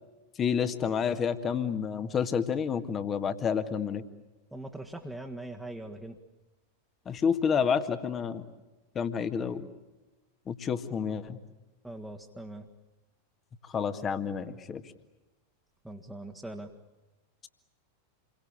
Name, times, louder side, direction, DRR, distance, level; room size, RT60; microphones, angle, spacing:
voice 1, 0.4-4.0 7.1-8.4 9.0-9.7 10.5-11.4 13.7-14.8, left 7 dB, 25° left, 10 dB, 1.9 m, -29 dB
voice 2, 4.5-6.2 11.8-12.7 15.8-16.7, right 1 dB, 5° right, 1 dB, 1.9 m, -41 dB
29.0 x 23.5 x 8.8 m, 1.1 s
figure-of-eight pair, 90°, 0 cm